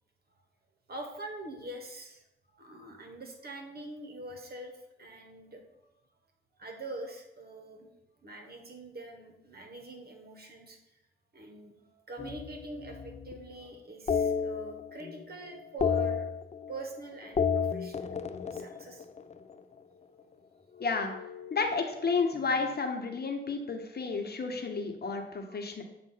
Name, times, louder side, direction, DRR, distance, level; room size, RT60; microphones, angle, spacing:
voice 1, 0.9-2.2 2.5-5.9 6.6-7.9 8.2-10.8 11.3-16.3 16.7-18.2 18.5-19.1 20.2-20.3 25.5-25.6, right 2 dB, 50° right, 3 dB, 1.4 m, -44 dB
sound 1, 12.2-13.5 14.1-15.2 15.5-16.9 17.2-19.6 20.8-22.5, left 6 dB, 35° left, 0.4 m, -33 dB
voice 2, 20.8-21.1 21.5-25.8, left 4 dB, 50° left, 4 dB, 1.0 m, -31 dB
7.4 x 2.5 x 5.6 m, 0.87 s
cardioid pair, 50°, 21 cm